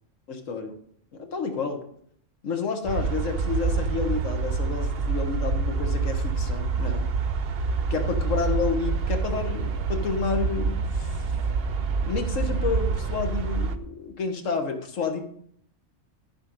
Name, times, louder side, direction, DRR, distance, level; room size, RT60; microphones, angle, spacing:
voice 1, 0.3-0.7 1.1-1.8 2.4-7.1 7.9-11.4 12.0-15.2, left 5 dB, 75° left, 5 dB, 1.7 m, -30 dB
sound 1, 2.9-13.8, right 4 dB, 55° right, 0.9 m, -27 dB
13.5 x 5.6 x 5.1 m, 0.65 s
omnidirectional pair, 1.3 m